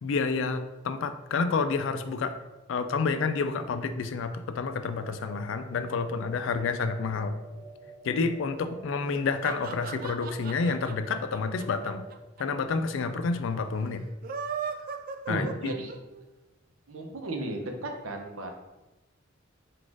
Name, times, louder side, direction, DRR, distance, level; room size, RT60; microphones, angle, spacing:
voice 1, 0.0-2.4 2.7-7.4 8.0-12.0 12.4-14.0 15.3-15.7, left 4 dB, 65° left, 9 dB, 0.4 m, -29 dB
sound 1, 4.8-12.2, right 3 dB, 25° right, 0.8 m, -49 dB
sound 2, 9.1-12.4 12.7-12.8 13.0-13.1 14.1-16.2, right 6 dB, 45° right, 0.3 m, -37 dB
voice 2, 15.3-15.9 16.9-18.5, right 1 dB, 85° right, 3 dB, 0.7 m, -34 dB
4.1 x 2.4 x 4.6 m, 1.1 s
head